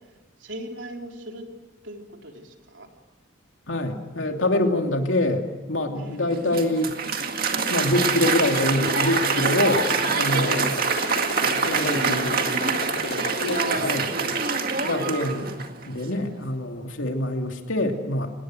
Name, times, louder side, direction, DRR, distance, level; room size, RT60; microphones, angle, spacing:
voice 1, 0.4-1.5 1.8-2.9 6.0-6.2 10.3-10.5 11.2-13.4 13.7-14.8, right 1 dB, 65° right, 2 dB, 3.8 m, -38 dB
voice 2, 3.7-6.9 7.7-9.9 10.2-10.7 11.7-12.4 13.4-14.1 14.9-15.5 15.9-18.3, left 1 dB, 75° left, 4 dB, 2.8 m, -25 dB
Applause, 6.3-15.9, right 5 dB, 45° right, 2.0 m, -25 dB
Motorcycle, 8.0-13.8, left 2 dB, 55° left, 1.9 m, -34 dB
25.5 x 20.0 x 7.7 m, 1.3 s
head